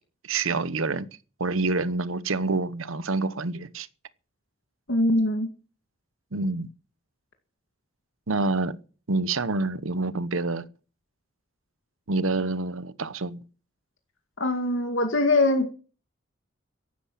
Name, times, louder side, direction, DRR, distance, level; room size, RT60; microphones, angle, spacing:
voice 1, 0.2-1.1 1.4-3.9 6.3-6.7 8.3-8.8 9.1-10.7 12.1-13.4, right 3 dB, 90° right, 1.0 m, -27 dB
voice 2, 4.9-5.5 14.4-15.7, left 2 dB, 75° left, 2.2 m, -22 dB
15.0 x 11.5 x 5.8 m
head